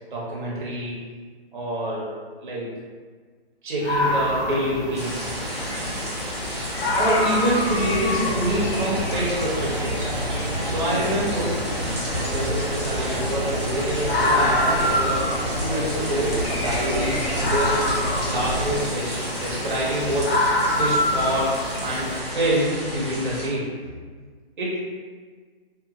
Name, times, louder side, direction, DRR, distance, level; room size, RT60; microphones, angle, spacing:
voice 1, 0.1-1.0 1.5-2.1 2.4-2.7 3.6-5.3 6.4-10.1 10.6-11.6 12.2-17.8 18.2-20.3 20.7-21.6 21.8-24.0 24.6-24.8, right 1 dB, 50° right, -5 dB, 0.7 m, -26 dB
sound 1, 3.8-22.2, left 1 dB, 70° left, 0.6 m, -27 dB
sound 2, 4.9-23.5, equal, 30° right, 0.4 m, -32 dB
sound 3, 7.7-18.8, equal, 90° right, 1.0 m, -30 dB
2.8 x 2.3 x 2.5 m, 1.5 s
hypercardioid pair, 170°, 32 cm